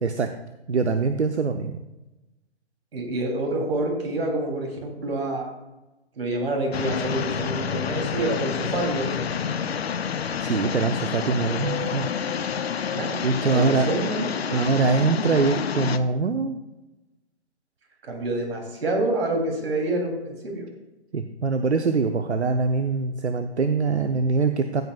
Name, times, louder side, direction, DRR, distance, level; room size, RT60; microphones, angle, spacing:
voice 1, 0.7-1.8 10.4-12.1 13.2-13.9 14.5-16.6 21.1-24.8, right 4 dB, 85° right, 7 dB, 0.8 m, -23 dB
voice 2, 2.9-5.5 6.2-9.3 12.8-14.6 18.0-20.7, right 2 dB, 60° right, 0 dB, 3.3 m, -27 dB
sound 1, 6.7-16.0, left 7 dB, 65° left, 0.7 m, -28 dB
15.0 x 8.0 x 2.4 m, 1.0 s
figure-of-eight pair, 130°, 33 cm